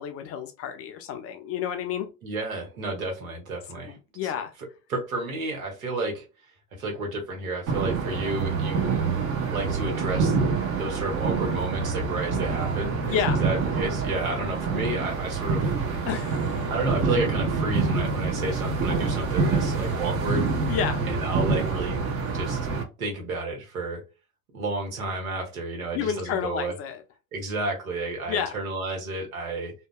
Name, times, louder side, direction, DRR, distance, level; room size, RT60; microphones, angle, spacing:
voice 1, 0.0-2.1 3.9-4.5 13.0-13.4 16.1-16.6 20.7-21.0 25.9-27.0 28.3-28.6, left 8 dB, 35° left, 0.5 m, -30 dB
voice 2, 2.2-4.0 4.9-6.2 6.7-9.0 9.5-10.3 10.7-15.7 16.7-20.5 21.1-22.0 22.3-22.6 23.0-24.0 24.5-26.7 27.3-29.7, right 2 dB, 75° right, 1.3 m, -31 dB
sound 1, 7.7-22.8, right 4 dB, 35° right, 0.8 m, -26 dB
2.7 x 2.2 x 2.3 m
figure-of-eight pair, 75°, 43 cm